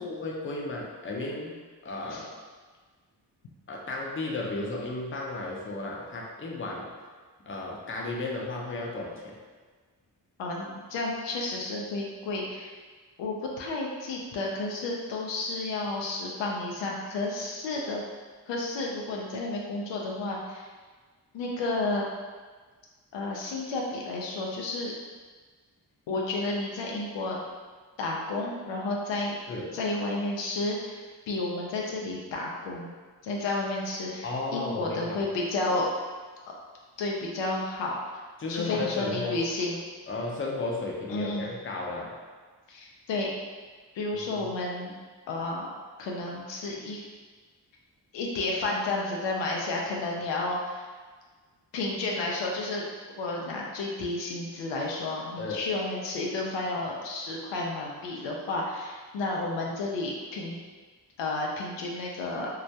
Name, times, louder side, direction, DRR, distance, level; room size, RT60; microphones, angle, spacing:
voice 1, 0.0-1.5 1.8-2.3 3.7-6.9 7.4-9.4 29.5-29.8 34.2-35.2 38.4-39.4 40.1-42.1 44.1-44.5 55.4-55.7, left 2 dB, 30° left, -2 dB, 0.5 m, -34 dB
voice 2, 10.4-12.7 13.2-18.0 18.5-20.7 21.3-22.1 23.1-24.9 26.1-27.4 28.0-29.4 29.7-32.9 33.2-35.9 37.0-37.9 38.5-39.8 41.1-41.5 42.7-43.3 43.9-44.9 45.3-45.7 46.0-47.0 48.1-50.8 51.7-52.9 53.2-60.6 61.2-62.5, left 2 dB, 80° left, -2 dB, 0.5 m, -31 dB
2.2 x 2.1 x 2.7 m, 1.4 s
cardioid pair, 50°, 43 cm